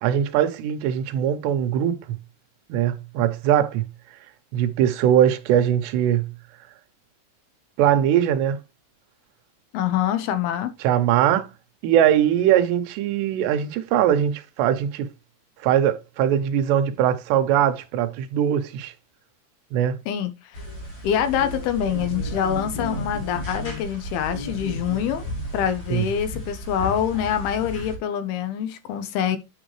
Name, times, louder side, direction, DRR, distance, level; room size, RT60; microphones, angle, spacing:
voice 1, 0.0-2.0 2.7-3.8 4.5-6.3 7.8-8.6 10.8-11.5 11.8-15.1 15.6-18.9 19.7-20.0 25.9-26.0, right 10 dB, 85° right, 3.1 m, -21 dB
voice 2, 9.7-10.7 20.1-20.6 21.0-25.2 25.5-29.4, left 9 dB, 75° left, 2.7 m, -25 dB
sound 1, 20.5-28.0, equal, 30° left, 2.4 m, -33 dB
9.7 x 5.2 x 3.2 m
omnidirectional pair, 4.8 m